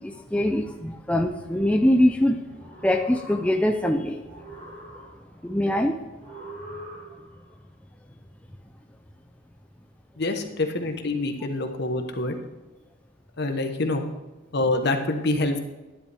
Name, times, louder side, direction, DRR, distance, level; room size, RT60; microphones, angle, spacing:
voice 1, 0.0-2.4 2.8-4.2 5.4-6.0, left 1 dB, 5° left, 4 dB, 0.5 m, -23 dB
sound 1, 2.4-3.9 4.2-5.5 6.2-7.5, right 1 dB, 45° right, 4.4 m, -43 dB
voice 2, 10.2-12.4 13.4-14.0 14.5-15.6, left 2 dB, 55° left, 5 dB, 1.2 m, -26 dB
12.5 x 10.5 x 3.5 m, 1.1 s
head